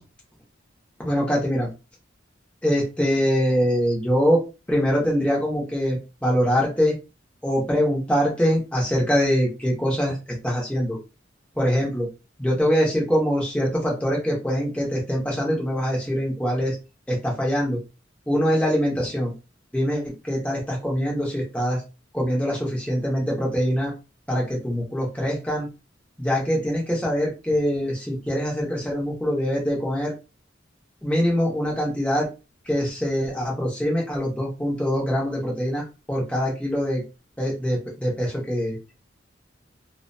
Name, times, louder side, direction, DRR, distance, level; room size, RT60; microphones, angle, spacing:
voice 1, 1.0-1.7 2.6-4.4 4.7-7.0 7.4-10.2 10.4-11.0 11.6-12.1 12.4-16.8 17.1-17.8 18.3-19.3 19.7-21.8 22.1-23.9 24.3-25.7 26.2-30.1 31.0-32.3 32.7-37.0 37.4-38.8, equal, 5° left, -3 dB, 0.8 m, -23 dB
2.4 x 2.1 x 2.6 m, 0.29 s
head